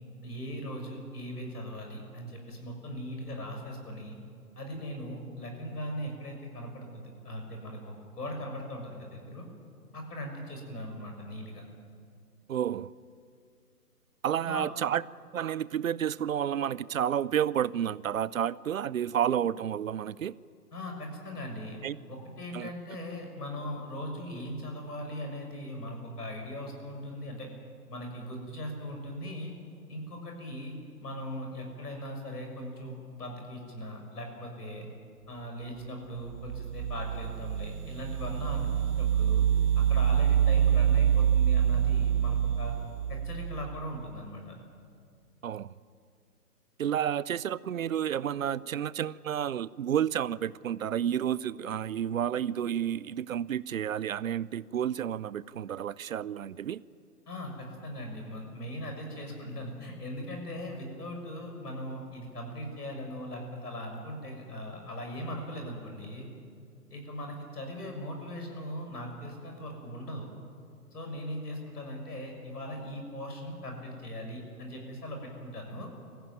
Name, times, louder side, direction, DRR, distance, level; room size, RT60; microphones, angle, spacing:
voice 1, 0.2-4.2 4.6-9.5 9.9-11.6 14.4-14.7 20.7-21.8 22.1-27.5 27.9-29.5 29.9-34.9 35.3-39.5 39.7-42.7 43.1-44.6 57.3-66.3 66.9-70.3 70.9-75.9, equal, 75° left, 3 dB, 6.6 m, -39 dB
voice 2, 12.5-12.9 14.2-15.0 15.3-20.3 21.8-22.0 22.5-22.7 45.4-45.7 46.8-56.8, right 9 dB, 60° right, 20 dB, 0.6 m, -30 dB
sound 1, 36.3-43.8, right 9 dB, 20° right, 1.0 m, -26 dB
24.5 x 15.0 x 9.3 m, 2.2 s
figure-of-eight pair, 135°, 47 cm